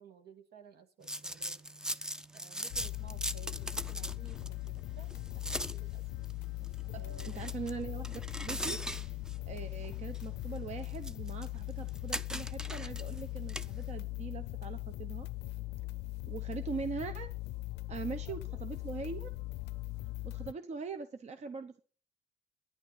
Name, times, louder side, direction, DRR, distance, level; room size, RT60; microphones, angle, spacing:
voice 1, 0.0-1.6 2.3-6.0 6.9-7.6 18.2-18.6, right 6 dB, 70° right, 6 dB, 2.2 m, -56 dB
sound 1, 1.0-13.9, equal, 5° right, 0.5 m, -42 dB
sound 2, 2.7-20.5, left 20 dB, 90° left, 0.5 m, -40 dB
voice 2, 6.9-9.2 9.5-15.3 16.3-17.3 17.9-19.3 20.2-21.8, right 5 dB, 40° right, 9 dB, 1.0 m, -42 dB
11.0 x 10.0 x 5.6 m, 0.39 s
cardioid pair, 110°, 17 cm